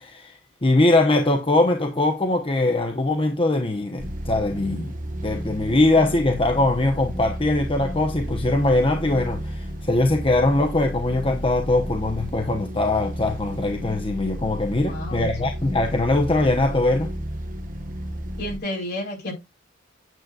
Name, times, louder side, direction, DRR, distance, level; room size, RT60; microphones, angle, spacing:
voice 1, 0.0-4.9 5.2-17.1, left 2 dB, 25° left, 0.9 m, -21 dB
sound 1, 4.0-18.6, equal, 45° right, 1.3 m, -32 dB
voice 2, 14.8-15.3 18.4-19.3, left 1 dB, 55° left, 4.4 m, -30 dB
9.2 x 7.5 x 2.4 m
head